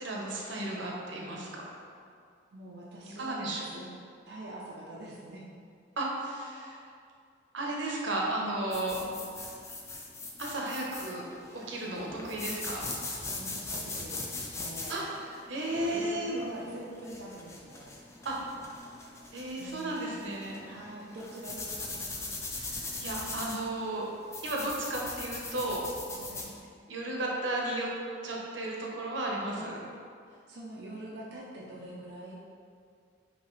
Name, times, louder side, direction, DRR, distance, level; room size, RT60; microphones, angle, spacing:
voice 1, 0.0-1.6 3.2-3.6 6.0-6.8 7.5-9.0 10.4-11.3 11.5-12.8 14.9-16.4 18.2-18.4 19.3-20.6 22.7-24.1 24.4-25.8 26.9-27.9 28.2-29.8, right 1 dB, 90° right, -2 dB, 0.8 m, -34 dB
voice 2, 2.5-3.9 4.3-5.4 8.7-9.1 12.0-12.2 13.4-15.0 15.9-17.9 19.6-20.2 20.6-22.0 26.1-26.5 29.4-29.8 30.3-32.4, right 1 dB, 60° right, -4 dB, 0.5 m, -45 dB
sound 1, 8.7-26.5, left 2 dB, 15° left, 0.3 m, -41 dB
5.5 x 2.8 x 3.1 m, 2.3 s
head